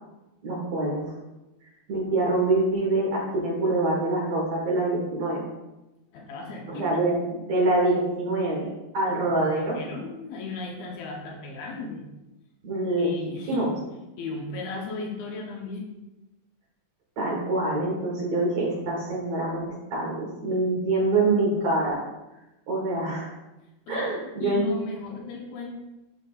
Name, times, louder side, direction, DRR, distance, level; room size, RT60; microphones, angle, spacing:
voice 1, 0.4-1.1 1.9-5.5 6.7-8.7 8.9-9.8 12.6-13.2 13.5-13.7 17.2-22.0 22.7-23.3 23.9-24.7, right 2 dB, 55° right, -4 dB, 2.3 m, -25 dB
voice 2, 6.1-6.8 9.3-9.4 9.7-12.1 13.0-13.7 14.2-15.9 23.9-24.1 24.4-25.7, left 3 dB, 75° left, 0 dB, 2.7 m, -36 dB
12.5 x 5.8 x 2.4 m, 1.0 s
omnidirectional pair, 4.6 m